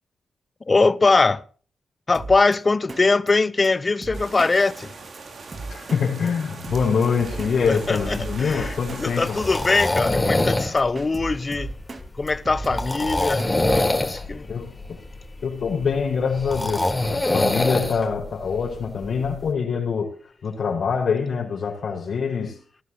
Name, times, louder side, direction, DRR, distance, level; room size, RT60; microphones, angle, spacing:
voice 1, 0.7-1.4 2.1-4.9 7.7-11.7 12.2-13.5 14.0-14.5, left 3 dB, 35° left, 0.9 m, -21 dB
Drum kit, 2.1-2.6 2.9-3.0 3.3-3.4 3.6-3.7 4.0-4.5 4.8-4.9 5.1-5.2 5.5-6.0 6.3-6.4 6.6-7.5 7.8-9.0 9.3-9.4 9.6-9.7 10.0-10.5 10.8-12.0 12.3-14.0, right 3 dB, 40° right, 2.7 m, -35 dB
sound 1, 4.1-9.9, right 4 dB, 60° right, 3.5 m, -40 dB
voice 2, 5.7-9.4 14.5-15.0 15.4-20.2 20.4-22.6, left 6 dB, 70° left, 6.2 m, -25 dB
sound 2, 7.4-19.5, left 2 dB, 20° left, 4.2 m, -26 dB
18.5 x 13.5 x 3.2 m
supercardioid pair, 50°, 0 cm